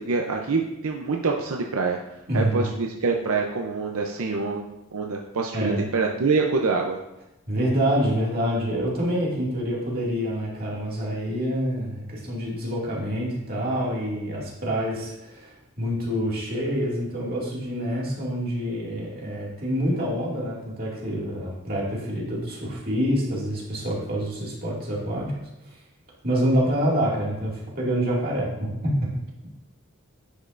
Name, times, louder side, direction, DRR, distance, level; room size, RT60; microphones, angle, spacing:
voice 1, 0.0-2.0 2.3-7.0, right 4 dB, 85° right, 1 dB, 0.6 m, -25 dB
voice 2, 2.3-2.7 5.5-5.8 7.5-25.3 25.7-25.8 26.2-29.0, equal, 45° right, -5 dB, 2.2 m, -26 dB
10.0 x 5.4 x 2.5 m, 0.92 s
head